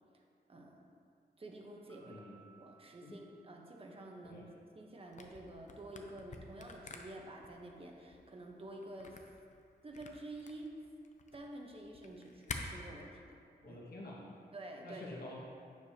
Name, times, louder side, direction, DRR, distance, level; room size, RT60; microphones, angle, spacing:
voice 1, 1.4-2.2 2.6-9.2 9.8-10.7 11.3-13.4 13.7-13.8 14.5-15.0, right 1 dB, 35° right, 0 dB, 0.9 m, -49 dB
Piano, 1.9-4.5, right 6 dB, 20° left, 1.9 m, -65 dB
voice 2, 2.0-2.3 3.0-3.2 4.3-4.5 13.6-14.3 14.8-15.4, left 1 dB, 70° left, -5 dB, 1.5 m, -48 dB
Camera, 5.1-12.6, left 4 dB, 45° left, 0.6 m, -49 dB
9.4 x 6.8 x 2.8 m, 2.4 s
wide cardioid pair, 115°, 17 cm